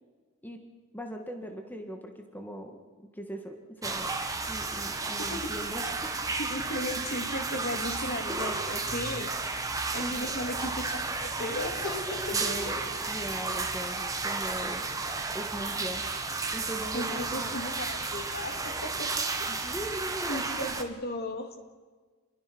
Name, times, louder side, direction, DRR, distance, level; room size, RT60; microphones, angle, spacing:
voice 1, 0.9-2.8 3.1-4.2 4.5-6.1 10.0-10.4 12.3-14.9 15.3-16.0 16.5-17.6 19.5-20.8, equal, 10° left, 4 dB, 1.8 m, -40 dB
sound 1, 3.8-20.8, right 3 dB, 15° right, 1.7 m, -33 dB
voice 2, 6.4-9.3 9.9-12.4 16.9-19.1 19.4-19.7 20.3-21.5, left 1 dB, 45° left, 5 dB, 2.7 m, -36 dB
28.5 x 21.5 x 6.2 m, 1.4 s
head